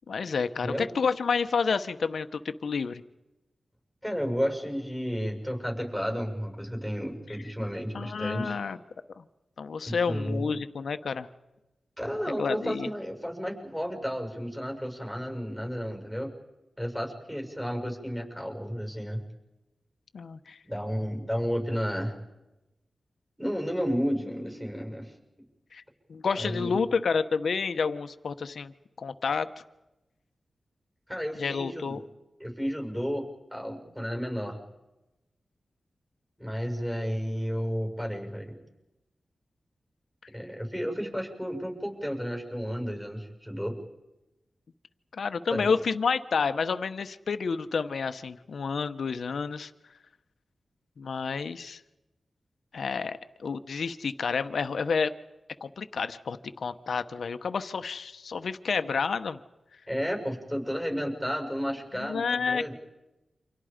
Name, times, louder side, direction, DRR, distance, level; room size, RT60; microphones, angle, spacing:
voice 1, 0.1-3.0 7.9-8.8 9.2-9.3 9.6-11.3 12.4-12.9 20.1-20.6 25.7-25.8 26.1-28.7 29.0-29.5 31.4-32.0 45.2-49.7 51.0-51.8 52.7-55.1 55.6-59.4 62.1-62.7, left 5 dB, 80° left, 10 dB, 1.0 m, -29 dB
voice 2, 0.6-0.9 4.0-8.6 9.8-10.5 12.0-16.3 16.8-19.2 20.6-22.2 23.4-25.1 26.3-26.8 31.1-32.0 32.4-33.2 33.5-34.6 36.4-38.6 40.3-43.7 45.5-45.7 59.9-62.7, equal, 5° right, 3 dB, 6.6 m, -32 dB
29.0 x 26.0 x 5.2 m, 1.0 s
wide cardioid pair, 75°, 0 cm